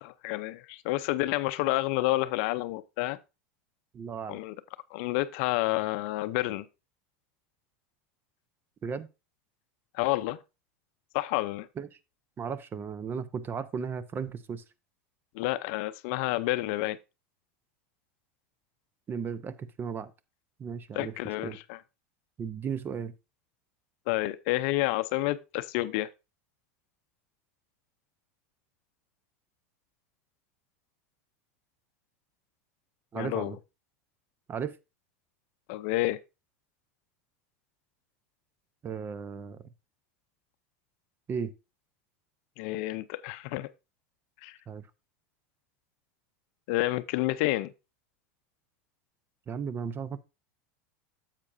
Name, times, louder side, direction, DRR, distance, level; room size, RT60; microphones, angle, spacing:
voice 1, 0.0-3.2 4.3-4.6 4.9-6.7 9.9-10.4 11.1-11.7 15.3-17.0 20.9-21.8 24.1-26.1 33.1-33.6 35.7-36.2 42.6-43.7 44.4-44.6 46.7-47.7, left 18 dB, 65° left, 0.5 m, -29 dB
voice 2, 3.9-4.4 8.8-9.1 11.8-11.9 12.4-14.6 19.1-20.1 20.6-21.1 21.4-21.6 22.4-23.1 33.1-33.6 34.5-34.7 38.8-39.6 41.3-41.5 44.7-44.8 49.5-50.2, right 6 dB, 30° right, 0.7 m, -35 dB
9.7 x 7.4 x 2.6 m
hypercardioid pair, 105°, 7 cm